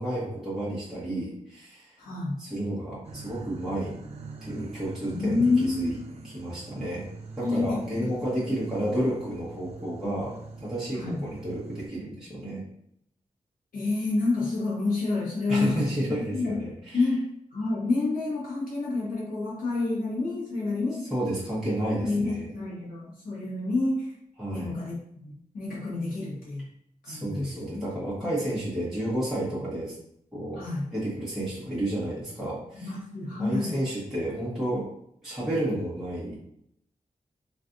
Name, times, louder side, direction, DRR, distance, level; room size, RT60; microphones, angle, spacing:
voice 1, 0.0-2.0 2.4-4.0 4.4-6.0 6.2-7.1 7.4-10.3 10.6-12.6 15.5-17.1 21.1-22.5 24.4-24.7 27.0-30.0 30.3-30.6 30.9-32.9 33.4-34.9 35.2-36.4, right 1 dB, 5° right, -10 dB, 1.0 m, -31 dB
voice 2, 2.0-2.4 5.1-5.9 7.4-8.1 10.9-11.2 13.7-16.6 16.9-17.2 17.5-21.1 22.0-24.1 24.5-26.6 27.0-27.9 30.5-30.8 32.7-33.7, left 3 dB, 90° left, -7 dB, 1.4 m, -28 dB
sound 1, 3.0-11.9, right 3 dB, 50° right, 0.5 m, -44 dB
3.3 x 2.4 x 2.5 m, 0.73 s
wide cardioid pair, 80°, 14 cm